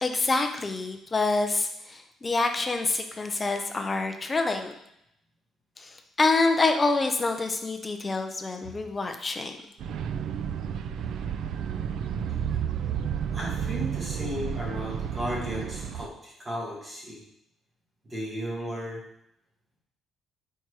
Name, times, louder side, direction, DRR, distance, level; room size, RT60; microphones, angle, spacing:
voice 1, 0.0-4.7 5.8-9.5, left 3 dB, 20° left, 6 dB, 0.5 m, -26 dB
sound 1, 9.8-16.1, right 8 dB, 60° right, 0.3 m, -31 dB
voice 2, 13.3-17.2 18.1-19.0, equal, 20° right, -4 dB, 1.7 m, -35 dB
4.5 x 4.3 x 4.7 m, 0.78 s
cardioid pair, 175°, 0 cm